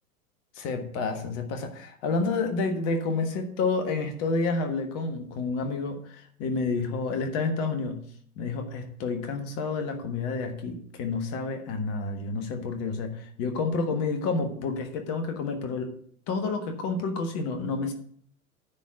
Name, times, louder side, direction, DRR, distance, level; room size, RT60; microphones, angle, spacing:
voice 1, 0.5-8.0 8.4-15.9 16.3-17.9, left 3 dB, 35° left, 6 dB, 1.4 m, -29 dB
9.9 x 4.3 x 7.3 m, 0.62 s
figure-of-eight pair, 95°, 45 cm